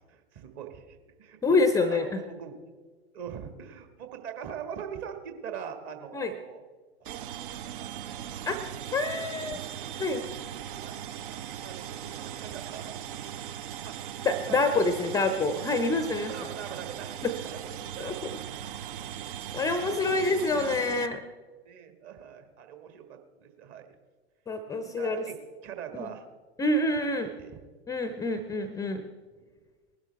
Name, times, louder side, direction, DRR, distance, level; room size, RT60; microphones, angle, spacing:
voice 1, 0.0-1.6 1.9-2.7 3.1-6.6 7.0-9.5 10.8-10.9 11.6-13.2 13.9-14.0 14.5-15.1 16.1-17.2 17.5-17.7 17.9-18.4 19.9-20.1 21.6-23.9 24.7-25.4 25.6-26.2 27.4-27.6 29.4-29.6, right 8 dB, 35° right, 6 dB, 1.7 m, -43 dB
voice 2, 1.4-2.2 6.1-6.3 8.5-8.6 8.9-9.6 10.0-10.3 14.2-16.5 17.2-17.3 18.0-18.1 19.5-21.2 24.5-25.3 26.0-26.1 26.6-27.3 27.9-29.0, left 2 dB, 10° left, 10 dB, 0.6 m, -27 dB
sound 1, 7.0-21.1, right 10 dB, 50° right, 0.7 m, -39 dB
20.0 x 12.0 x 3.3 m, 1.4 s
figure-of-eight pair, 100°, 33 cm